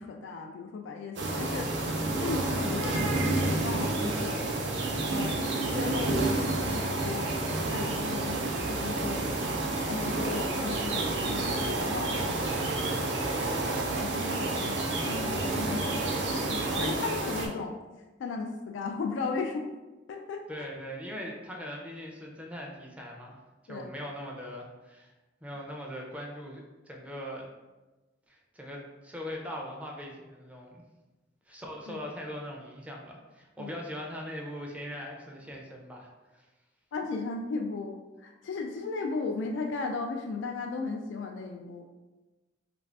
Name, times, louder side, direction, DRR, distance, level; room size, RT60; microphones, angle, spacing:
voice 1, 0.0-4.5 5.1-9.4 9.9-12.7 13.8-17.7 18.2-19.7 20.1-20.7 23.7-23.9 31.9-32.0 33.6-33.7 36.9-41.8, left 4 dB, 85° left, 3 dB, 0.3 m, -36 dB
sound 1, 1.2-17.5, right 2 dB, 70° right, 0.5 m, -29 dB
voice 2, 13.6-14.1 20.5-23.4 23.7-25.1 25.4-27.5 28.3-30.8 31.5-36.1 36.3-36.5, equal, 10° right, -1 dB, 0.5 m, -41 dB
3.2 x 2.5 x 3.2 m, 1.1 s
head